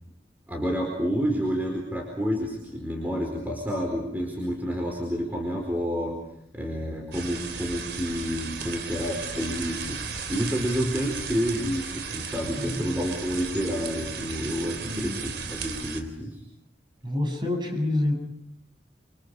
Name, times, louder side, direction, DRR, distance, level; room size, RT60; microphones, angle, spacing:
voice 1, 0.5-6.2 6.5-10.0 10.3-16.4, equal, 10° right, 1 dB, 4.5 m, -29 dB
sound 1, 7.1-16.0, right 5 dB, 70° right, 3.4 m, -35 dB
voice 2, 12.6-12.9 14.9-15.2 17.0-18.2, left 1 dB, 25° right, 3 dB, 7.5 m, -27 dB
29.0 x 25.5 x 4.9 m, 0.76 s
head